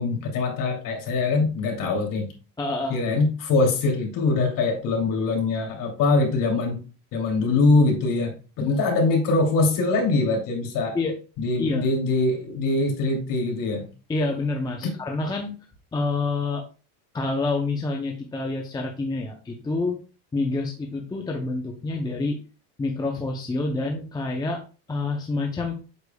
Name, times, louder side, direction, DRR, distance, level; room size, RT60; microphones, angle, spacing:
voice 1, 0.0-2.3 2.9-6.8 7.1-11.0 11.4-13.9 14.8-14.9, left 3 dB, 45° left, 0 dB, 2.9 m, -23 dB
voice 2, 2.6-3.0 10.9-11.1 11.6-11.9 14.1-15.6 15.9-16.6 17.1-20.0 20.3-22.4 22.8-24.6 24.9-25.8, left 3 dB, 10° left, 2 dB, 0.6 m, -27 dB
8.2 x 6.7 x 2.3 m, 0.34 s
cardioid pair, 155°, 45 cm